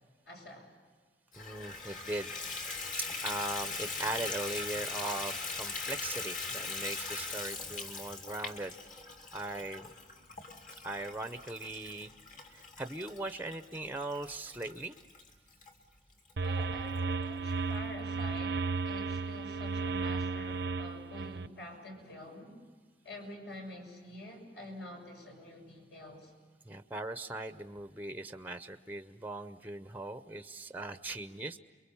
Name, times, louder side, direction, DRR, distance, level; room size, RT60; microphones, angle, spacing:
voice 1, 0.3-0.7 16.4-22.6 23.0-26.3, left 1 dB, 70° left, 2 dB, 7.0 m, -47 dB
Water tap faucet / Bathtub (filling or washing), 1.3-15.7 16.3-16.4 16.9-17.0 17.3-17.4, left 4 dB, 50° left, 2.7 m, -40 dB
voice 2, 1.3-2.3 3.2-8.7 9.3-9.9 10.8-12.1 12.5-14.9 26.6-31.6, right 2 dB, 10° right, 10 dB, 0.7 m, -39 dB
sound 1, 16.4-21.5, right 4 dB, 70° right, 0.7 m, -34 dB
29.5 x 23.5 x 7.1 m, 1.5 s
head